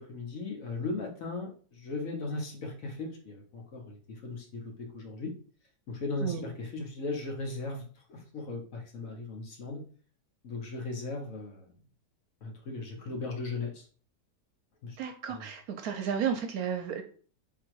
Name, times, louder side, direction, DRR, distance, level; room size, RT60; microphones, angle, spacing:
voice 1, 0.0-5.3 5.9-9.8 10.4-11.7 12.4-13.9 14.8-15.0 15.3-15.4, left 3 dB, 55° left, 1 dB, 1.2 m, -37 dB
voice 2, 15.0-17.0, right 7 dB, 70° right, 6 dB, 1.0 m, -33 dB
3.9 x 2.9 x 4.6 m, 0.43 s
omnidirectional pair, 1.8 m